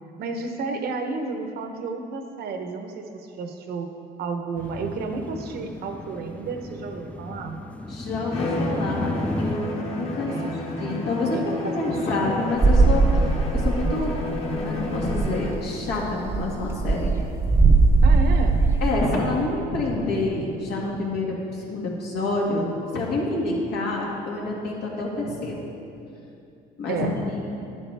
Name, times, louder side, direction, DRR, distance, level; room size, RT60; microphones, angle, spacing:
voice 1, 0.2-3.9 4.2-7.6 10.2-10.6 11.3-12.3 18.0-18.6 26.9-27.1, right 4 dB, 65° right, 5 dB, 0.9 m, -32 dB
sound 1, 4.6-9.6, left 1 dB, 10° left, 0.4 m, -33 dB
voice 2, 7.9-9.1 9.4-10.3 10.8-13.0 13.5-14.2 14.6-17.1 18.8-25.6 26.8-27.4, left 2 dB, 75° left, -3 dB, 2.1 m, -27 dB
Bowed string instrument, 8.3-15.7, left 2 dB, 35° left, 1.4 m, -31 dB
sound 2, 12.6-14.2 14.5-14.6 14.9-15.4 15.9-18.9, right 3 dB, 15° right, 0.7 m, -19 dB
11.0 x 8.7 x 3.4 m, 2.7 s
cardioid pair, 110°, 17 cm